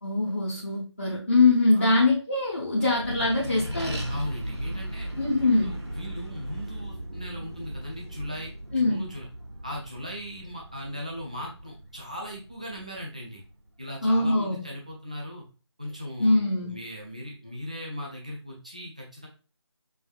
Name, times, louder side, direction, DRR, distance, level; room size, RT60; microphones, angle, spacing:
voice 1, 0.0-4.0 5.2-5.7 8.7-9.0 14.0-14.6 16.2-16.8, left 2 dB, 25° left, -8 dB, 0.7 m, -23 dB
Accelerating revving vroom, 2.8-13.7, right 1 dB, 65° right, 1.3 m, -37 dB
voice 2, 4.1-5.1 5.6-9.3 9.6-13.4 13.8-15.4 15.8-19.3, equal, 15° right, -2 dB, 0.5 m, -38 dB
5.4 x 2.5 x 2.3 m, 0.34 s
figure-of-eight pair, 170°, 15 cm